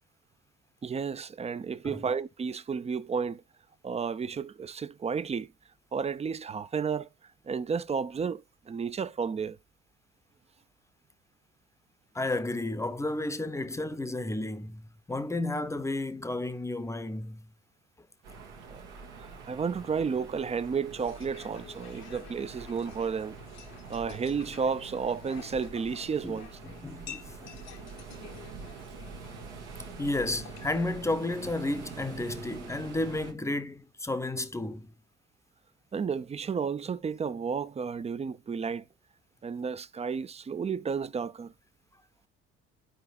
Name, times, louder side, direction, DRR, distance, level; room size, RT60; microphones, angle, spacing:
voice 1, 0.8-3.4 3.8-5.5 5.9-7.1 7.5-9.6 18.7-18.8 19.2-23.4 23.9-26.5 35.9-38.8 39.4-41.5, right 6 dB, 20° right, 0.5 m, -32 dB
voice 2, 12.1-17.5 26.2-27.6 30.0-34.9, left 2 dB, 10° left, 0.8 m, -32 dB
sound 1, 18.2-33.3, right 5 dB, 75° right, 1.3 m, -45 dB
sound 2, 21.0-30.8, left 9 dB, 50° left, 0.9 m, -50 dB
12.0 x 4.8 x 2.4 m
figure-of-eight pair, 50°, 35 cm